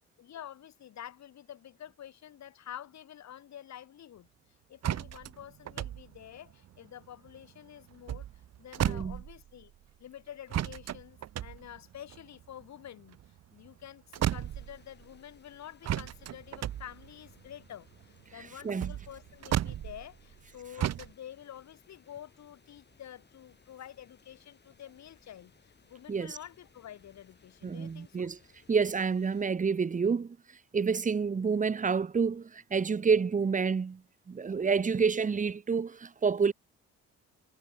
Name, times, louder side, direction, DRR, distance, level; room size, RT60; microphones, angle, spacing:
voice 1, 0.2-4.3 4.7-9.7 10.0-13.2 13.5-28.3, left 10 dB, 65° left, 2.4 m, -48 dB
sound 1, 4.8-7.5 7.9-9.7 10.5-13.8 14.1-15.2 15.8-20.5 20.8-21.1, right 12 dB, 60° right, 0.9 m, -35 dB
voice 2, 8.8-9.2 18.6-18.9 26.1-26.4 27.6-28.4 28.7-30.4 30.7-34.0 34.3-36.5, right 5 dB, 25° right, 0.9 m, -28 dB
sound 2, 14.2-29.4, left 5 dB, 35° left, 6.0 m, -63 dB
cardioid pair, 90°, 30 cm